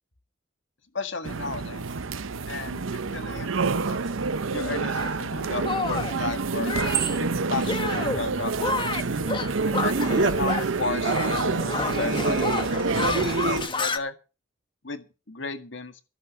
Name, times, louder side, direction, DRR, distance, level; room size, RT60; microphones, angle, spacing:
voice 1, 0.9-1.9 2.5-2.8 3.1-4.0 4.5-6.7 7.2-8.8 9.6-14.1 14.8-16.0, left 4 dB, 65° left, 8 dB, 1.8 m, -34 dB
sound 1, 1.2-13.7, right 4 dB, 90° right, 0.7 m, -28 dB
Shatter, 4.9-5.1 5.6-6.2 6.7-7.2 7.6-8.2 8.6-10.8 11.0-14.0, left 3 dB, 25° left, 1.3 m, -30 dB
Singing, 7.4-13.6, right 2 dB, 65° right, 1.8 m, -31 dB
15.0 x 7.2 x 7.4 m, 0.32 s
head